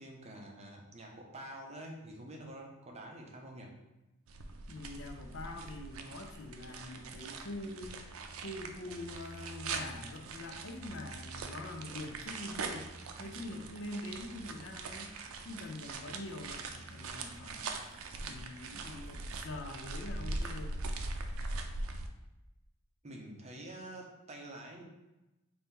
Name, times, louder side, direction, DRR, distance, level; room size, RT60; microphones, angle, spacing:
voice 1, 0.0-3.7 23.0-24.8, right 1 dB, 30° right, 0 dB, 0.6 m, -47 dB
sound 1, 4.3-22.1, right 3 dB, 85° right, 0.4 m, -42 dB
voice 2, 4.7-8.1 8.4-12.9 13.2-17.7 18.2-20.8, left 2 dB, 60° left, 3 dB, 0.5 m, -44 dB
4.1 x 2.7 x 3.7 m, 0.99 s
head